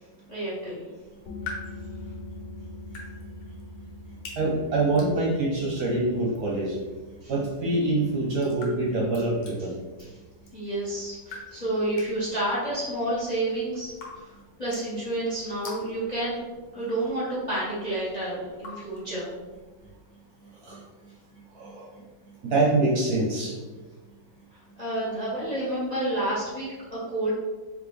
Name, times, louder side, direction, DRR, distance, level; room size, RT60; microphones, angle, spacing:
voice 1, 0.3-0.8 7.2-7.3 10.0-10.1 10.5-14.3 14.6-16.4 16.7-19.3 24.8-27.3, right 1 dB, 30° left, -8 dB, 0.8 m, -30 dB
sound 1, 1.0-19.9, left 3 dB, 70° left, 1.7 m, -48 dB
sound 2, 1.3-12.6, left 1 dB, 90° left, 1.4 m, -45 dB
voice 2, 4.4-6.8 7.3-9.8 20.6-20.8 21.5-21.9 22.4-23.5, right 2 dB, 60° right, -4 dB, 1.1 m, -25 dB
4.1 x 3.0 x 3.3 m, 1.3 s
omnidirectional pair, 2.1 m